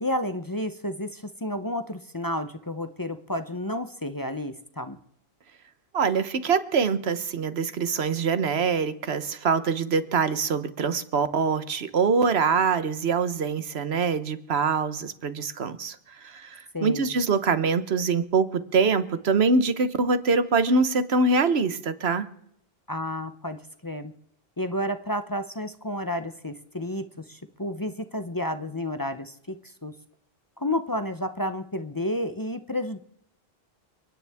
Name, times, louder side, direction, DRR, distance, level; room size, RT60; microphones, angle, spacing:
voice 1, 0.0-5.0 16.7-17.2 22.9-24.1 24.6-29.9 30.6-33.0, left 1 dB, 25° left, 9 dB, 0.7 m, -31 dB
voice 2, 5.9-16.0 16.2-22.3, right 4 dB, 85° right, 12 dB, 1.3 m, -24 dB
30.0 x 10.0 x 3.5 m, 0.73 s
omnidirectional pair, 1.0 m